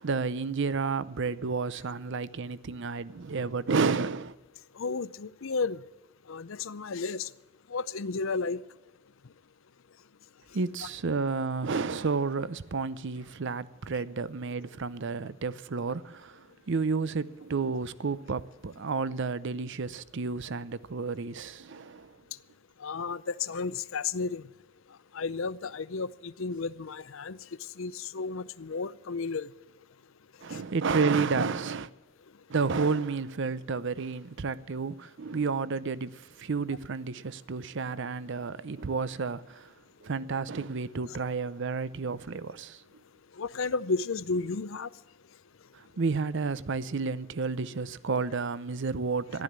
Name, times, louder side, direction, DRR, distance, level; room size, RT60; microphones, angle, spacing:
voice 1, 0.0-4.4 10.5-22.2 30.4-31.9 32.5-39.7 40.0-42.8 45.7-49.4, right 4 dB, 60° right, 0.6 m, -31 dB
voice 2, 4.8-5.8 6.3-7.3 7.7-8.6 22.8-24.4 25.1-27.4 27.8-29.5 30.5-30.6 43.4-44.9, left 4 dB, 65° left, 0.6 m, -32 dB
14.5 x 12.0 x 7.4 m
head